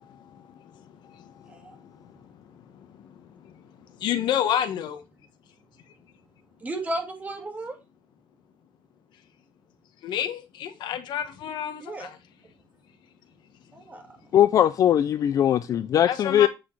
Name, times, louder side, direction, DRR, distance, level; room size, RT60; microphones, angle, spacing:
voice 1, 4.0-5.0 10.0-12.2 16.1-16.5, left 10 dB, 65° left, 1.1 m, -28 dB
voice 2, 6.6-7.7 11.8-12.1 13.7-14.0, right 1 dB, 20° right, 1.7 m, -34 dB
voice 3, 14.3-16.5, left 10 dB, 45° left, 0.4 m, -20 dB
8.2 x 6.3 x 3.2 m
cardioid pair, 155°, 8 cm